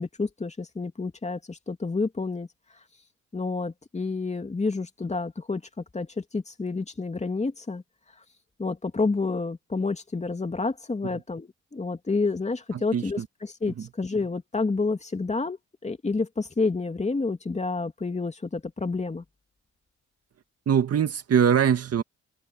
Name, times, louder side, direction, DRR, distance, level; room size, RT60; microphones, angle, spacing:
voice 1, 0.0-2.5 3.3-5.6 5.9-7.8 8.6-15.6 15.8-19.2, left 3 dB, 20° left, 2.7 m, -29 dB
voice 2, 12.7-13.3 13.8-13.9 20.7-22.0, right 8 dB, 55° right, 2.0 m, -23 dB
cardioid pair, 90°, 30 cm